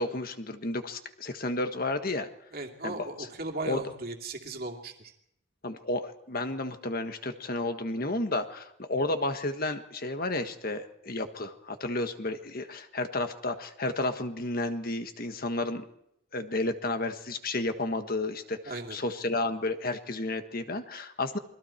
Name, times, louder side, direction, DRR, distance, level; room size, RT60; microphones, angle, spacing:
voice 1, 0.0-2.3 2.8-3.0 3.6-3.8 5.6-15.8 16.3-21.4, left 2 dB, 45° left, 8 dB, 1.5 m, -32 dB
voice 2, 2.5-5.1 18.6-19.0, right 2 dB, 45° right, 3 dB, 2.6 m, -37 dB
28.0 x 22.0 x 4.5 m, 0.76 s
head